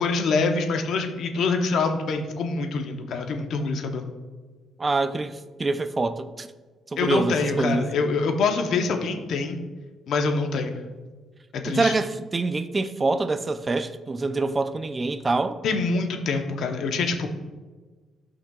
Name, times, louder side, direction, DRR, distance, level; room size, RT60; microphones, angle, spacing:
voice 1, 0.0-4.1 7.0-9.6 10.1-10.8 11.5-12.0 15.6-17.3, left 4 dB, 60° left, 0.8 m, -25 dB
voice 2, 4.8-6.5 6.9-7.9 11.7-15.6, right 3 dB, 20° right, 0.3 m, -25 dB
13.0 x 5.8 x 2.3 m
cardioid pair, 160°, 0 cm